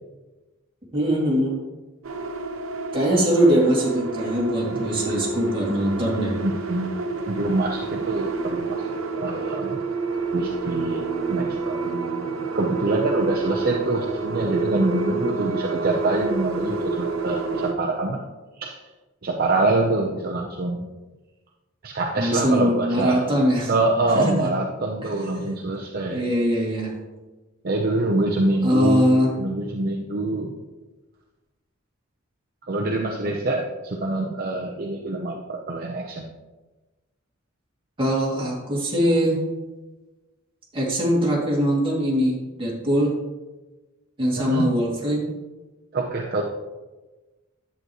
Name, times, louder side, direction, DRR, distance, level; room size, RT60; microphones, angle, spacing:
voice 1, 0.9-1.6 2.9-6.4 22.2-23.7 24.1-24.5 25.0-25.3 26.1-27.0 28.6-29.3 38.0-39.4 40.7-43.2 44.2-45.3, equal, 25° right, -4 dB, 2.5 m, -22 dB
sound 1, 2.0-17.7, right 3 dB, 85° right, 0.9 m, -28 dB
voice 2, 4.7-5.3 6.4-6.9 7.3-9.8 10.3-18.2 18.5-18.8 19.2-20.9 21.8-23.2 23.7-26.3 27.6-30.5 32.7-36.2 44.4-44.7 45.9-46.4, right 2 dB, 50° right, 0 dB, 0.7 m, -25 dB
10.5 x 8.0 x 3.0 m, 1.2 s
head